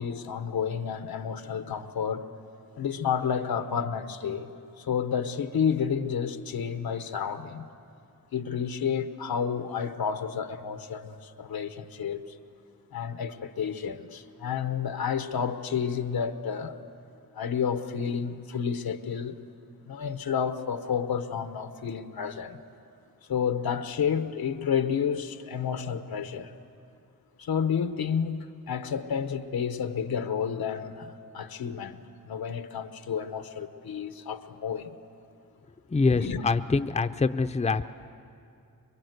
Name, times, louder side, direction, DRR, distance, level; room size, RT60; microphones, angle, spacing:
voice 1, 0.0-2.3 2.8-4.5 4.8-7.7 8.3-12.3 12.9-16.8 17.3-19.4 19.9-22.6 23.3-26.5 27.4-32.0 32.2-34.9 36.1-36.4, left 7 dB, 85° left, 1.1 m, -30 dB
voice 2, 35.9-37.8, left 4 dB, 20° left, 0.6 m, -25 dB
25.0 x 22.5 x 8.1 m
wide cardioid pair, 85°, 35 cm